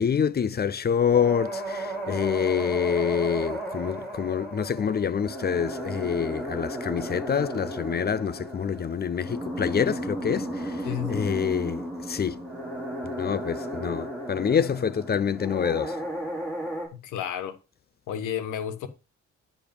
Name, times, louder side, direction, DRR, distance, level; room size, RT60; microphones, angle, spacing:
voice 1, 0.0-12.4 13.0-16.0, left 7 dB, 35° left, 0.6 m, -26 dB
sound 1, 1.1-16.9, right 1 dB, 5° left, 4.5 m, -34 dB
voice 2, 10.8-11.3 16.9-17.6 18.1-18.9, left 10 dB, 85° left, 1.4 m, -32 dB
10.5 x 5.1 x 5.2 m
cardioid pair, 90°, 30 cm